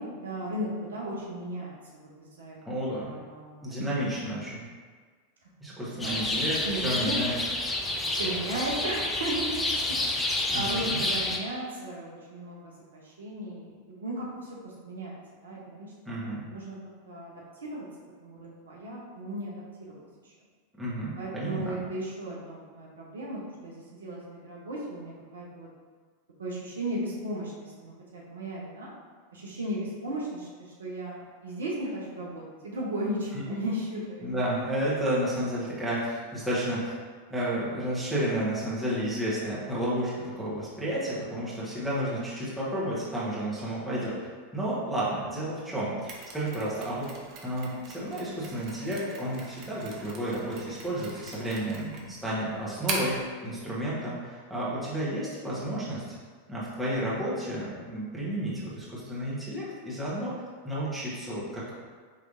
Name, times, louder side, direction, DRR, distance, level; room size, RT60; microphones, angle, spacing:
voice 1, 0.0-2.6 2.8-3.6 6.0-6.2 6.6-7.1 8.1-10.0 10.2-15.2 15.4-15.9 16.4-16.8 17.0-17.9 18.2-20.3 21.2-25.7 26.4-28.9 29.3-34.3, right 1 dB, 70° right, -4 dB, 0.8 m, -36 dB
voice 2, 2.6-3.1 3.6-4.7 5.6-7.4 10.5-11.0 16.0-16.4 20.8-21.8 34.2-36.9 37.3-44.2 44.5-47.1 47.4-56.0 56.5-61.7, right 1 dB, 5° right, -9 dB, 1.4 m, -31 dB
sound 1, 6.0-11.4, left 2 dB, 15° left, 0.5 m, -29 dB
Mechanisms, 46.1-53.3, right 3 dB, 40° right, 0.7 m, -40 dB
5.2 x 3.1 x 2.6 m, 1.6 s
figure-of-eight pair, 90°, 0 cm